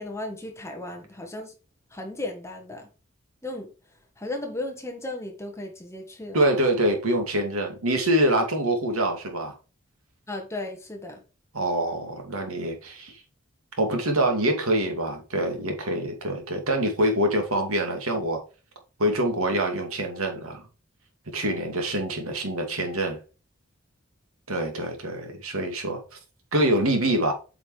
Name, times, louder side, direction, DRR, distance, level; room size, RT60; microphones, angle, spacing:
voice 1, 0.0-1.5 1.9-2.9 3.4-3.7 4.2-6.4 10.3-11.2, left 2 dB, 15° left, 1.5 m, -35 dB
voice 2, 6.3-9.5 11.5-13.1 13.8-18.4 19.0-20.6 21.3-23.2 24.5-26.0 26.5-27.3, right 1 dB, 90° right, 2.2 m, -25 dB
8.2 x 5.1 x 3.2 m
head